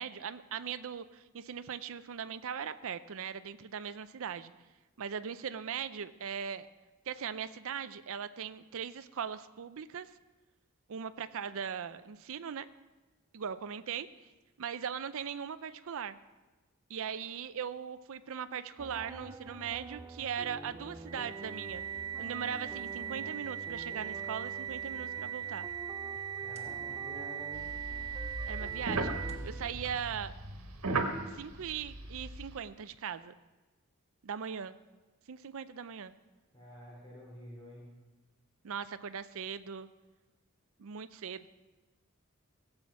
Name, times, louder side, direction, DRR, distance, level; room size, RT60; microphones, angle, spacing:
voice 1, 0.0-4.5 5.0-6.7 7.1-10.1 10.9-12.7 13.3-14.1 14.6-16.2 16.9-21.8 22.2-25.7 28.5-29.2 29.4-30.3 31.3-33.3 34.2-34.7 35.3-36.1 38.6-39.9 40.8-41.5, right 7 dB, 65° right, 12 dB, 0.5 m, -39 dB
sound 1, 18.8-29.8, right 2 dB, 15° right, 0.5 m, -48 dB
sound 2, 21.1-29.6, right 9 dB, 30° right, 1.4 m, -40 dB
voice 2, 26.4-27.7 36.5-37.9, equal, 20° left, -6 dB, 2.9 m, -49 dB
sound 3, 27.5-32.6, right 2 dB, 90° right, 1.4 m, -37 dB
17.0 x 7.7 x 5.9 m, 1.2 s
head